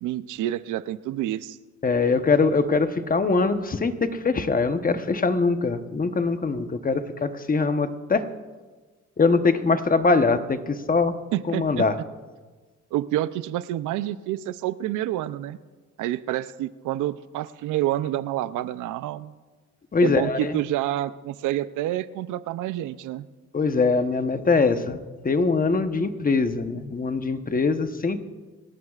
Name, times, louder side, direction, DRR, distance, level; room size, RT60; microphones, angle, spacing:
voice 1, 0.0-1.6 11.3-11.9 12.9-15.6 16.0-19.3 20.0-23.3, right 13 dB, 90° right, 15 dB, 0.6 m, -28 dB
voice 2, 1.8-8.2 9.2-11.1 11.5-11.9 19.9-20.5 23.5-25.0 25.2-28.2, left 4 dB, 30° left, 9 dB, 1.0 m, -22 dB
27.5 x 14.0 x 2.4 m, 1.3 s
cardioid pair, 90°, 30 cm